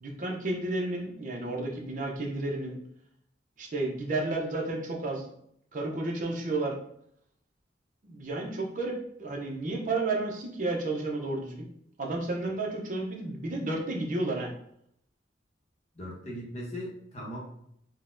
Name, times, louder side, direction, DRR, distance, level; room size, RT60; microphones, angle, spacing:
voice 1, 0.0-2.8 3.6-5.3 5.7-6.8 8.0-11.7 12.0-14.5, right 2 dB, 45° right, 0 dB, 0.6 m, -32 dB
voice 2, 15.9-17.4, equal, 40° left, -2 dB, 0.8 m, -38 dB
3.8 x 2.1 x 2.5 m, 0.71 s
head